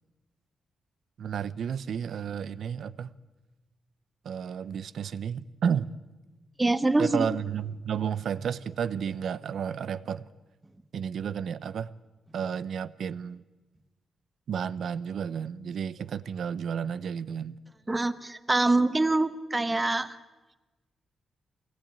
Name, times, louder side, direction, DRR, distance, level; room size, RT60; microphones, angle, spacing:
voice 1, 1.2-3.1 4.2-5.9 7.0-10.3 10.9-11.9 12.3-13.4 14.5-17.6, right 7 dB, 70° right, 16 dB, 0.7 m, -32 dB
voice 2, 6.6-7.3 17.9-20.2, right 2 dB, 15° right, 12 dB, 1.0 m, -25 dB
24.5 x 17.5 x 8.9 m, 1.2 s
wide cardioid pair, 135°, 0 cm